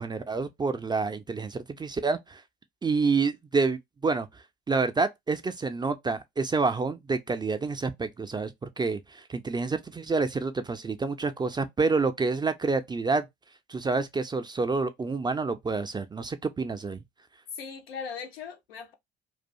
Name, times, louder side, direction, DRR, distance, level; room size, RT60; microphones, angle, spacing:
voice 1, 0.0-2.4 2.8-4.3 4.7-13.3 13.7-17.0, right 4 dB, 15° right, 0.3 m, -28 dB
voice 2, 17.5-18.9, left 6 dB, 85° left, 0.6 m, -39 dB
2.4 x 2.2 x 2.6 m
hypercardioid pair, 60°, 29 cm